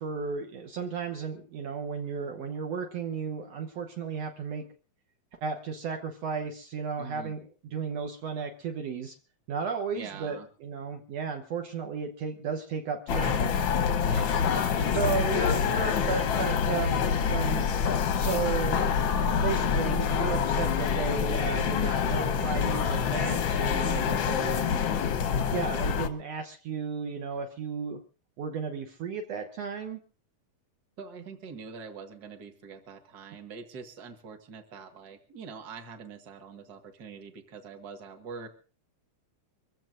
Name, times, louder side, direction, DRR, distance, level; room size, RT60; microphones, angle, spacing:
voice 1, 0.0-4.7 5.4-7.4 7.7-9.2 9.5-13.5 14.9-17.7 18.1-18.9 19.4-24.9 25.5-28.0 28.4-30.0, right 5 dB, 65° right, 4 dB, 2.0 m, -34 dB
voice 2, 7.0-7.3 9.9-10.5 14.0-15.5 31.0-38.5, right 5 dB, 40° right, 5 dB, 1.8 m, -44 dB
sound 1, 13.1-26.1, left 7 dB, 60° left, 1.3 m, -26 dB
25.0 x 15.0 x 2.6 m, 0.36 s
omnidirectional pair, 3.3 m